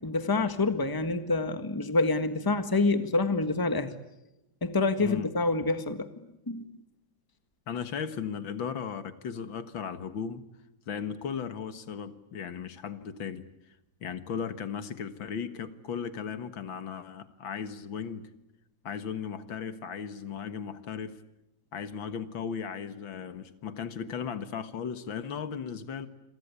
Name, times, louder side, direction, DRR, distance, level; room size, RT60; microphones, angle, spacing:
voice 1, 0.0-4.0 4.6-6.1 6.5-6.6, left 3 dB, 10° left, 1.4 m, -27 dB
voice 2, 5.0-5.3 7.7-10.4 10.9-13.4 14.0-18.3 18.8-21.2 21.7-26.1, left 7 dB, 80° left, 2.3 m, -36 dB
28.0 x 23.0 x 8.3 m
omnidirectional pair, 2.1 m